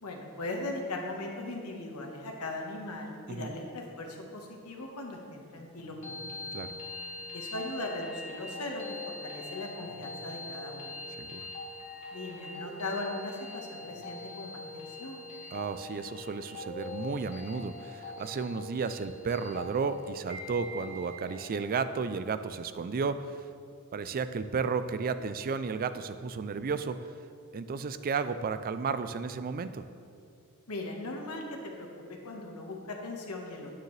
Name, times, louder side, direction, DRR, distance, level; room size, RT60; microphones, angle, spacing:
voice 1, 0.0-6.2 7.3-11.0 12.1-15.2 30.7-31.4 31.8-33.7, left 2 dB, 85° left, 1 dB, 1.3 m, -39 dB
sound 1, 5.8-21.8, left 2 dB, 35° left, 1.7 m, -43 dB
voice 2, 11.2-11.5 15.5-23.4 23.9-27.0 27.5-29.9, right 5 dB, 40° right, 12 dB, 0.3 m, -33 dB
9.1 x 9.1 x 3.2 m, 2.4 s
head